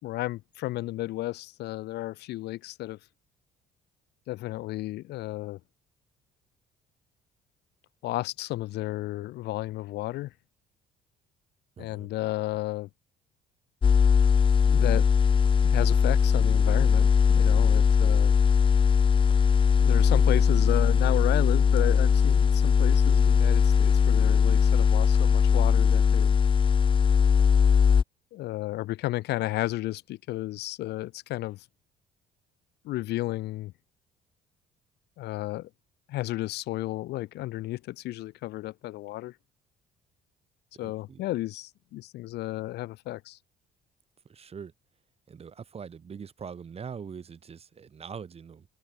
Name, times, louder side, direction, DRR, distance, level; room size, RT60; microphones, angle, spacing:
voice 1, 0.0-3.0 4.3-5.6 8.0-10.3 11.8-12.9 14.7-15.1 15.6-18.3 19.8-26.3 28.3-31.6 32.8-33.7 35.2-35.7 36.1-39.3 40.8-43.4, left 17 dB, 80° left, 2.4 m, -33 dB
voice 2, 11.8-12.1 40.7-41.2 44.2-44.7 45.3-48.7, right 6 dB, 35° right, 5.0 m, -42 dB
sound 1, 13.8-28.0, left 6 dB, 30° left, 0.8 m, -20 dB
cardioid pair, 110°, 17 cm